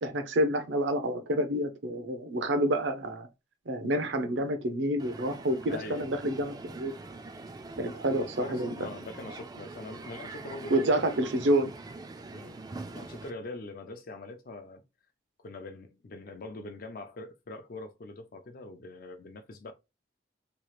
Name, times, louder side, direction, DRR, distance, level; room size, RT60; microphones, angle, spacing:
voice 1, 0.0-3.3 3.7-6.9 7.8-8.7 10.7-11.7, right 1 dB, 75° right, 0.6 m, -28 dB
Crowd, 5.0-13.3, right 3 dB, 20° right, 0.3 m, -44 dB
voice 2, 5.7-6.1 8.2-11.1 12.3-12.6 12.9-14.8 15.4-19.7, left 2 dB, 50° left, 0.4 m, -43 dB
3.0 x 2.4 x 3.1 m
head